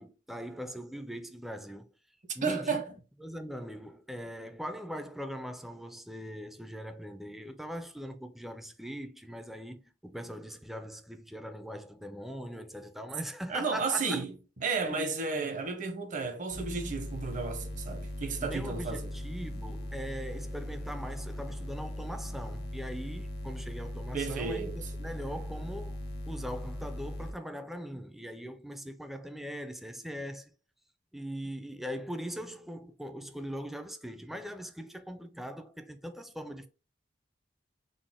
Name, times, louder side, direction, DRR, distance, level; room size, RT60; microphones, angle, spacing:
voice 1, 0.0-1.9 2.3-2.8 3.2-14.2 14.9-15.1 15.3-15.6 18.4-26.0 26.3-30.5 31.1-36.7, equal, ahead, 0.3 m, -41 dB
voice 2, 2.4-2.9 13.5-14.3 14.6-19.1 24.1-24.8, right 4 dB, 45° right, 0.7 m, -32 dB
sound 1, 16.5-27.3, equal, 60° left, 0.7 m, -39 dB
4.0 x 2.1 x 3.5 m
head